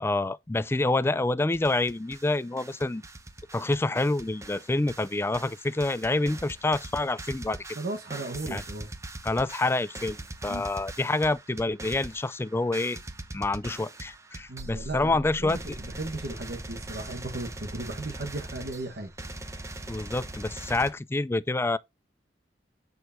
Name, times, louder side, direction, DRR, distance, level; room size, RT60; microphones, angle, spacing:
voice 1, 0.0-3.0 3.5-7.7 8.5-8.6 9.2-13.0 13.3-15.6 19.9-21.8, left 2 dB, 15° left, 0.4 m, -27 dB
sound 1, 1.5-2.3 2.6-20.9, right 2 dB, 15° right, 0.9 m, -41 dB
voice 2, 7.8-8.9 10.5-10.7 14.5-19.1, right 2 dB, 65° right, 1.3 m, -36 dB
8.1 x 6.7 x 2.7 m
head